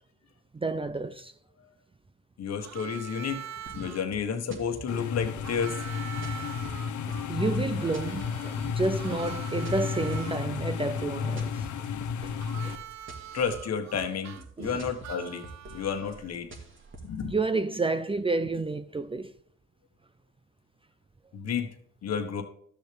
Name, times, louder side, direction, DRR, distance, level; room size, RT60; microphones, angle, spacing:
voice 1, 0.5-1.3 7.3-11.7 12.2-12.8 14.6-14.9 17.2-19.3, right 3 dB, 20° right, 0.6 m, -30 dB
voice 2, 2.4-3.4 3.7-6.0 13.3-15.4 15.7-16.5 17.0-17.3 21.3-21.7 22.0-22.4, left 6 dB, 55° left, 1.5 m, -31 dB
Harmonica, 2.6-4.1 5.4-10.4 12.4-16.3, right 10 dB, 65° right, 0.8 m, -43 dB
sound 1, 3.7-17.2, right 3 dB, 40° right, 2.2 m, -47 dB
sound 2, 4.9-12.8, left 6 dB, 75° left, 1.0 m, -32 dB
13.0 x 6.8 x 3.5 m
cardioid pair, 90°, 30 cm